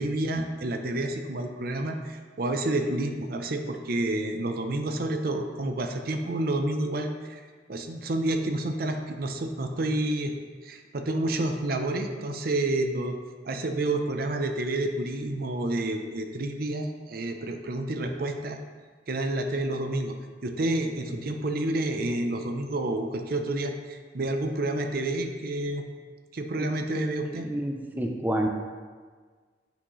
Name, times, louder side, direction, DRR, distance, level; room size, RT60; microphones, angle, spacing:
voice 1, 0.0-7.4 7.7-10.3 10.6-13.2 13.4-18.6 19.1-20.1 20.4-25.8 26.3-27.5, right 1 dB, 55° right, 5 dB, 0.6 m, -29 dB
voice 2, 27.4-28.5, right 1 dB, 10° right, 2 dB, 0.5 m, -29 dB
8.5 x 6.0 x 3.1 m, 1.5 s
head